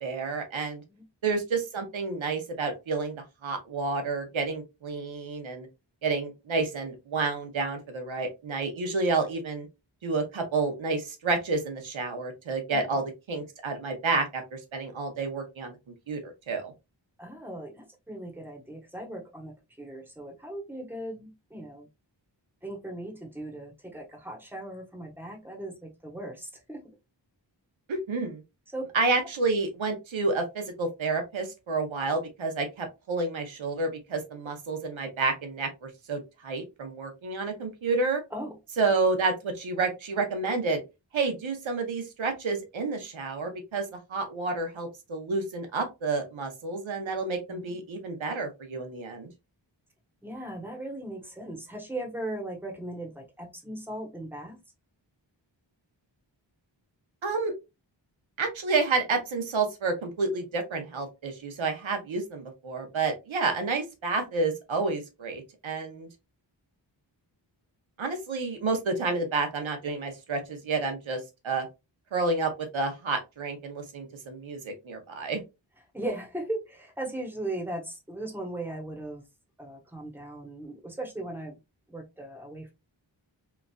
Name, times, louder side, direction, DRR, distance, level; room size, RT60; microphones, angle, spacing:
voice 1, 0.0-0.8 1.2-3.2 3.4-5.7 6.0-9.7 10.0-15.7 16.1-16.7 27.9-28.4 28.9-38.2 38.8-40.8 41.1-49.3 57.2-57.5 58.4-66.1 68.0-71.7 72.1-75.4, right 3 dB, 90° right, 5 dB, 0.8 m, -30 dB
voice 2, 17.2-21.9 22.6-26.8 28.7-28.8 38.3-38.6 47.5-47.8 50.2-54.6 75.9-79.2 79.6-81.6 81.9-82.7, right 1 dB, 5° right, 1 dB, 0.9 m, -38 dB
3.0 x 2.4 x 2.2 m, 0.24 s
wide cardioid pair, 60°, 45 cm